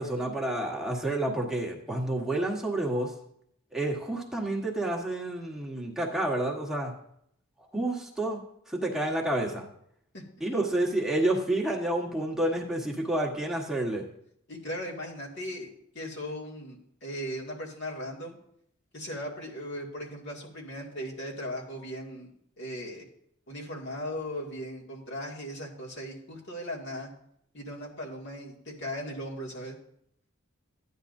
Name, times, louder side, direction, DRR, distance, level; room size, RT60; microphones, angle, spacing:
voice 1, 0.0-3.1 3.7-6.9 7.7-8.4 8.7-9.7 10.4-14.0, right 1 dB, ahead, -2 dB, 1.4 m, -29 dB
voice 2, 10.1-10.6 14.5-18.4 18.9-22.3 22.6-23.1 23.5-27.1 27.5-29.8, equal, 55° left, -3 dB, 2.3 m, -38 dB
15.0 x 9.8 x 2.7 m, 0.73 s
head